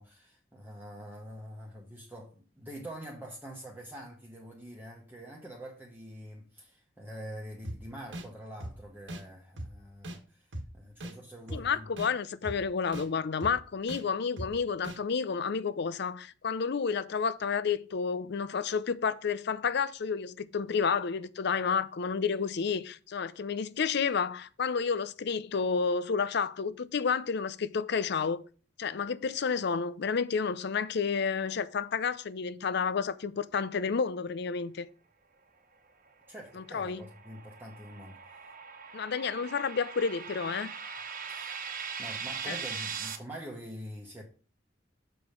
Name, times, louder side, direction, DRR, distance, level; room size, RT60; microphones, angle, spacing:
voice 1, 0.0-11.9 36.3-38.5 41.3-44.2, equal, 10° right, 1.1 m, -45 dB
sound 1, 7.6-7.8 8.1-8.3 8.6-8.7 9.1-9.2 9.6-9.7 10.0-10.2 10.5-10.7 11.0-11.1 11.5-11.6 12.0-12.1 12.4-12.6 12.9-13.1 13.4-13.5 13.9-14.0 14.4-14.5 14.8-15.0, right 1 dB, 75° right, 1.4 m, -38 dB
voice 2, 11.5-28.4 28.8-34.9 36.6-37.0 38.9-40.7 42.5-42.6, left 5 dB, 65° left, 0.5 m, -30 dB
sound 2, 36.3-43.2, right 6 dB, 50° right, 1.1 m, -40 dB
6.9 x 5.0 x 5.2 m
head